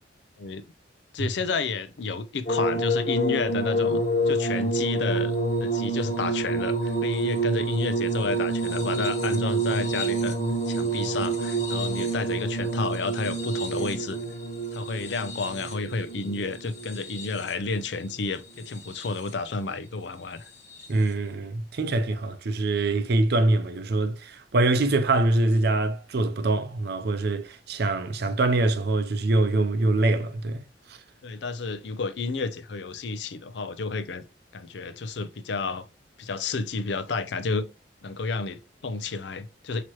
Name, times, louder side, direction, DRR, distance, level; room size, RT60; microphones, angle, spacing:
voice 1, 1.1-5.4 5.6-10.4 10.7-14.2 14.7-20.5 31.2-34.2 34.5-35.9 36.2-37.7 38.0-39.8, left 4 dB, 70° left, 0.5 m, -31 dB
sound 1, 2.5-17.7 18.6-19.3 20.7-20.9, right 2 dB, 45° left, 1.2 m, -28 dB
voice 2, 20.9-30.6 30.9-31.0, right 2 dB, 65° right, 0.6 m, -24 dB
6.0 x 2.9 x 3.0 m
head